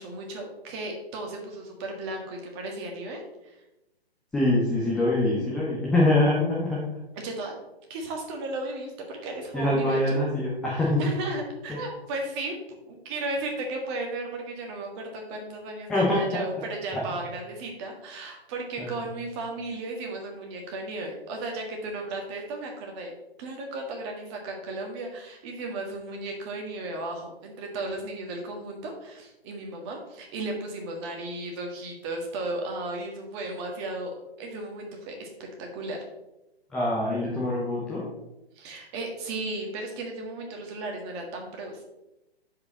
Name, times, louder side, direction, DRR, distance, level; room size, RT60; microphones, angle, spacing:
voice 1, 0.0-3.6 7.2-7.5 7.9-10.2 11.0-23.1 23.4-35.3 35.6-36.0 38.5-41.8, right 2 dB, 25° right, 2 dB, 1.7 m, -35 dB
voice 2, 4.3-6.9 9.5-11.1 15.9-16.2 16.9-17.0 18.8-18.9 36.7-38.1, left 1 dB, ahead, -6 dB, 0.4 m, -24 dB
10.5 x 5.0 x 4.1 m, 0.93 s
figure-of-eight pair, 135°, 32 cm